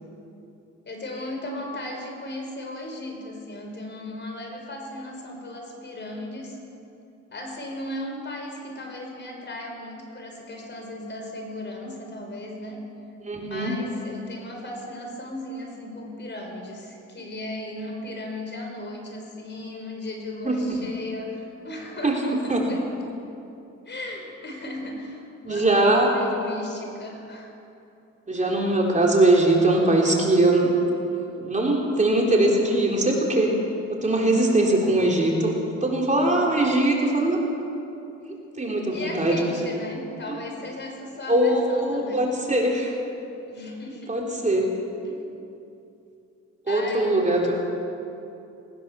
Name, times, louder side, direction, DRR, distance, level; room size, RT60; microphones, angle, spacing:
voice 1, 0.8-6.6 7.3-12.8 13.4-22.9 23.9-27.5 28.3-28.7 38.9-42.3 43.5-44.2 45.0-45.3 46.7-47.2, left 1 dB, 35° left, 2 dB, 5.3 m, -36 dB
voice 2, 13.3-13.7 20.4-20.8 22.0-22.6 25.4-26.1 28.3-30.7 31.4-33.5 33.9-35.5 35.8-37.4 38.6-39.4 41.3-42.9 44.1-44.7 46.7-47.5, right 2 dB, 25° right, -1 dB, 3.9 m, -21 dB
20.5 x 19.5 x 7.1 m, 2.8 s
cardioid pair, 90°, 30 cm